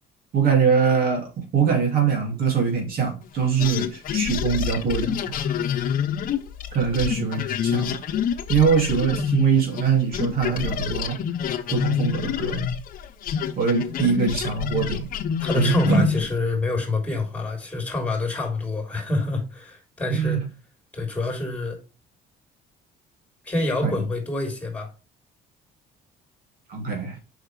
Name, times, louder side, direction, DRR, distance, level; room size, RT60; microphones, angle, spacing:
voice 1, 0.3-5.3 6.7-8.0 8.5-11.2 11.7-12.7 13.6-15.1 15.5-16.1 20.1-20.4 23.8-24.0 26.7-27.2, right 6 dB, 60° right, 2.6 m, -23 dB
sound 1, 3.6-9.9 10.1-16.4, left 8 dB, 55° left, 0.9 m, -27 dB
voice 2, 15.4-20.4 20.9-21.8 23.4-24.9, left 2 dB, 10° left, 3.6 m, -27 dB
6.4 x 5.7 x 3.3 m
cardioid pair, 110°, 17 cm